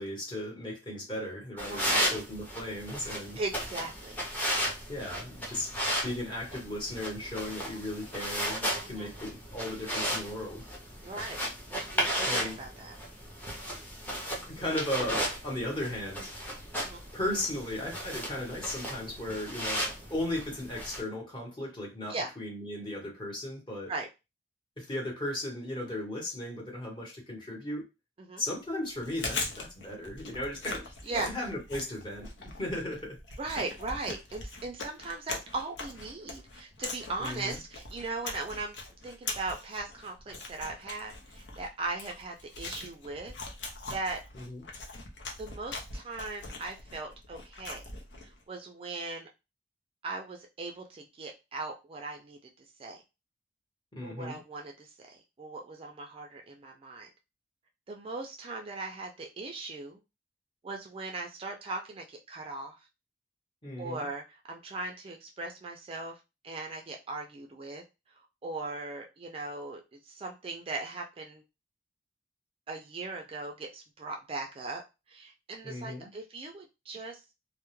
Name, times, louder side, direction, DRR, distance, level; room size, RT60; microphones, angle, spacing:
voice 1, 0.0-3.4 4.9-5.7 6.0-10.7 12.3-12.5 14.5-16.3 17.1-23.9 24.8-27.8 28.4-33.2 37.2-37.6 44.3-44.6 53.9-54.4 63.6-64.1 75.6-76.1, left 1 dB, 30° left, 1.0 m, -36 dB
sound 1, 1.6-21.0, equal, 10° left, 0.6 m, -35 dB
voice 2, 1.7-2.2 3.4-4.2 8.8-9.1 11.0-11.4 11.7-13.0 16.8-17.0 22.1-22.3 23.9-24.1 28.2-28.4 31.1-31.3 33.4-38.8 39.0-43.3 43.9-44.2 45.4-47.8 48.2-49.3 50.0-52.4 52.8-53.0 54.0-57.1 57.9-60.0 60.6-62.8 63.8-66.2 66.4-67.8 68.4-71.4 72.7-74.8 75.1-77.2, right 3 dB, 35° right, 0.3 m, -38 dB
Chewing mastication, 28.9-48.4, left 3 dB, 80° left, 0.6 m, -41 dB
2.2 x 2.1 x 3.0 m
head